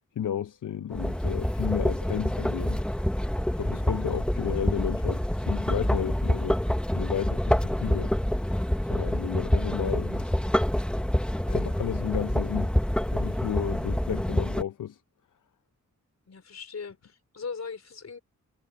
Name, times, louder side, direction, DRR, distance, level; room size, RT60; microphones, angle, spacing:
voice 1, 0.2-2.8 3.5-6.6 6.9-8.1 8.8-10.4 11.5-12.7 13.1-15.0, left 9 dB, 85° left, 0.6 m, -33 dB
sound 1, 0.9-14.6, equal, 5° left, 0.8 m, -27 dB
voice 2, 16.3-18.2, left 5 dB, 60° left, 4.4 m, -39 dB
wide cardioid pair, 155°, 31 cm